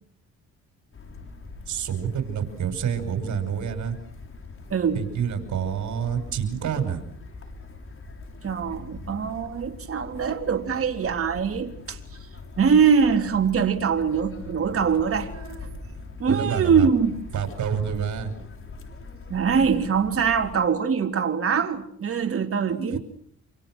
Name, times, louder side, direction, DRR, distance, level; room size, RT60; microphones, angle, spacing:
sound 1, 0.9-20.6, left 3 dB, 45° left, 6.9 m, -42 dB
voice 1, 1.7-3.9 4.9-7.0 15.2-15.6 16.3-16.9 17.3-18.3 22.7-23.0, right 8 dB, 70° right, 6.0 m, -28 dB
voice 2, 4.7-5.0 8.4-12.0 12.6-15.3 15.6-15.7 16.2-17.2 19.3-23.0, right 6 dB, 50° right, 3.8 m, -23 dB
28.5 x 27.5 x 6.4 m
cardioid pair, 90°, 30 cm